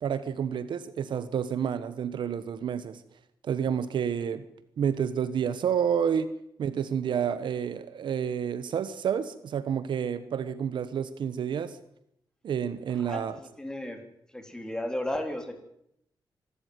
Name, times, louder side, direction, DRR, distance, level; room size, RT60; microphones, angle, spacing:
voice 1, 0.0-3.0 3.4-4.4 4.8-6.3 6.6-11.8 12.4-13.4, right 8 dB, 80° right, 13 dB, 1.3 m, -29 dB
voice 2, 12.9-14.0 14.3-15.5, left 1 dB, 10° left, 6 dB, 3.7 m, -34 dB
25.0 x 13.0 x 9.5 m, 0.75 s
wide cardioid pair, 120°, 8 cm